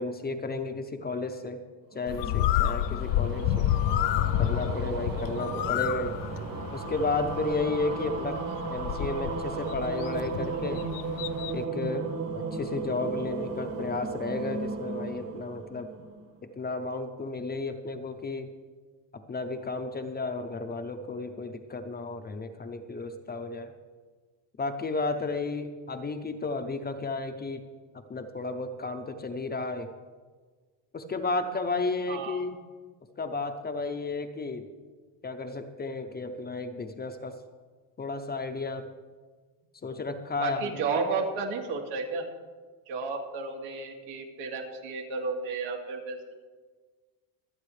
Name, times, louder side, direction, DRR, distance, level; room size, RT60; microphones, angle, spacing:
voice 1, 0.0-1.6 1.9-3.7 4.4-6.2 6.7-8.4 8.7-10.9 11.5-12.1 12.3-15.9 16.4-18.5 19.1-23.7 24.6-27.6 28.1-29.9 30.9-32.6 33.2-34.7 35.2-37.4 38.0-38.9 39.8-40.7, left 3 dB, 20° left, 7 dB, 0.6 m, -33 dB
sound 1, 1.9-16.4, right 4 dB, 40° right, 1.4 m, -35 dB
Bird, 2.1-11.6, left 12 dB, 60° left, 0.5 m, -30 dB
voice 2, 32.1-32.4 40.4-42.2 42.9-46.3, right 4 dB, 90° right, 0 dB, 2.6 m, -32 dB
25.5 x 8.7 x 3.3 m, 1.5 s
cardioid pair, 150°, 47 cm